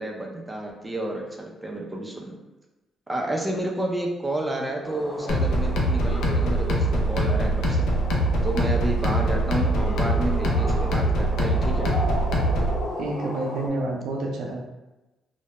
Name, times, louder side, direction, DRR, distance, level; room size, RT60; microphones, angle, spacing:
voice 1, 0.0-2.4 3.1-7.9 8.4-11.9, right 1 dB, 15° right, 0 dB, 0.5 m, -30 dB
sound 1, 4.8-13.7, left 1 dB, 50° left, 0.8 m, -36 dB
sound 2, 5.3-12.8, right 1 dB, 80° left, 0.4 m, -23 dB
voice 2, 13.0-14.6, right 2 dB, 80° right, -1 dB, 0.5 m, -29 dB
2.1 x 2.1 x 2.8 m, 1.1 s
cardioid pair, 90°, 0 cm